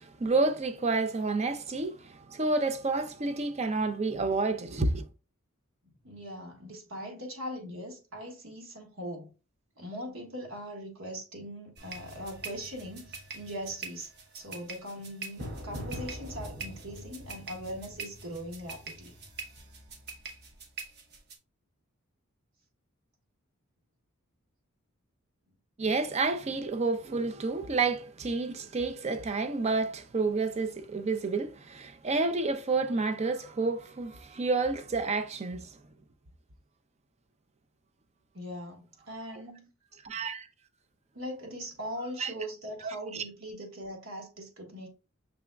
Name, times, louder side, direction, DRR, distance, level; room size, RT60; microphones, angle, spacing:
voice 1, 0.0-5.0 25.8-35.7 40.0-40.5 42.2-42.3 42.8-43.2, right 3 dB, 30° right, 0.5 m, -30 dB
voice 2, 6.0-9.3 9.8-14.1 14.3-19.1 38.3-39.7 41.1-44.9, equal, 75° right, 1.5 m, -40 dB
sound 1, 11.8-21.4, right 2 dB, 50° right, 1.0 m, -42 dB
6.1 x 3.5 x 2.3 m
head